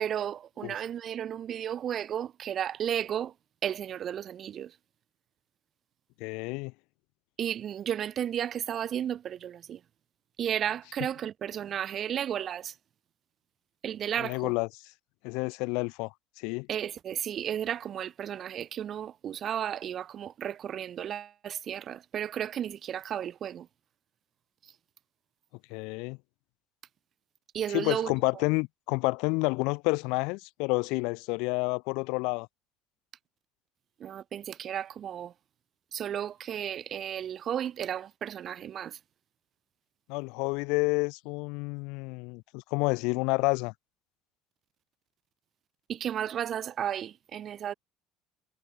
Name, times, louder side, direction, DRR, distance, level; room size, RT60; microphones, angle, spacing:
voice 1, 0.0-3.3 3.6-4.8 7.4-9.8 10.4-12.8 13.8-14.5 16.7-23.7 24.6-24.7 27.5-28.1 34.0-35.3 35.9-39.0 45.9-47.7, right 9 dB, 35° right, 7.1 m, -33 dB
voice 2, 6.2-6.7 14.2-14.7 15.2-16.7 25.7-26.2 27.7-32.5 40.1-43.7, left 29 dB, 75° left, 6.3 m, -29 dB
cardioid pair, 155°, 0 cm